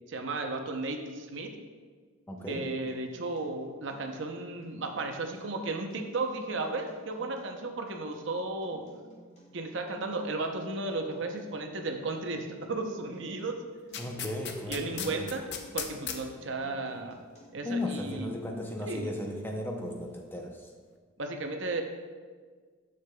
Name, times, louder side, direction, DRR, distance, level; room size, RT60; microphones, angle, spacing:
voice 1, 0.1-1.5 2.5-8.8 9.5-13.6 14.7-15.4 15.7-17.2 17.5-18.3 18.8-19.1 21.2-21.8, right 2 dB, 60° right, 4 dB, 0.7 m, -34 dB
voice 2, 2.3-2.7 8.7-8.9 14.0-15.2 17.6-20.7, left 1 dB, 10° left, 1 dB, 0.5 m, -36 dB
Acoustic guitar, 2.4-18.4, right 1 dB, 35° left, 1.8 m, -57 dB
sound 1, 13.9-16.2 17.8-17.9, left 8 dB, 55° left, 0.6 m, -36 dB
9.8 x 6.7 x 2.2 m, 1.5 s
head